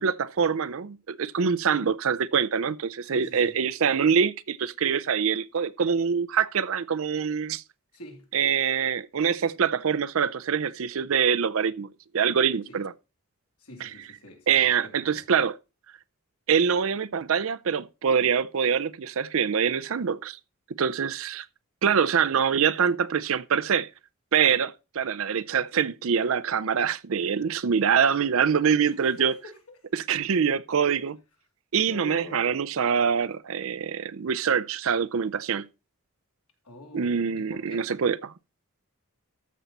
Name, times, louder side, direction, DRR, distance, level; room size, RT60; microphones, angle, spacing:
voice 1, 0.0-7.6 8.3-11.9 12.1-12.9 13.8-13.9 14.5-15.6 16.5-20.4 20.8-21.4 21.8-23.9 24.3-29.3 29.9-31.2 31.7-35.7 36.9-38.3, right 7 dB, 65° right, 0.5 m, -25 dB
voice 2, 3.0-3.6 7.9-8.3 12.7-12.8 13.6-15.2 28.8-29.8 31.7-32.5 36.6-37.9, left 1 dB, 85° left, 2.9 m, -44 dB
13.5 x 5.6 x 4.1 m
head